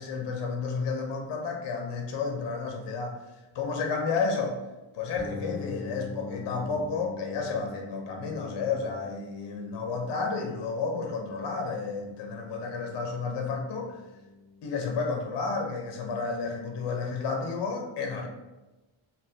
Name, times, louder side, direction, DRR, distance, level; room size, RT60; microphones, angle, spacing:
voice 1, 0.0-3.2 3.5-4.6 4.9-14.0 14.6-18.3, left 4 dB, 55° left, 2 dB, 0.6 m, -31 dB
sound 1, 5.2-14.9, left 4 dB, 40° right, 0.9 m, -44 dB
3.4 x 2.3 x 2.7 m, 1.1 s
wide cardioid pair, 160°, 50 cm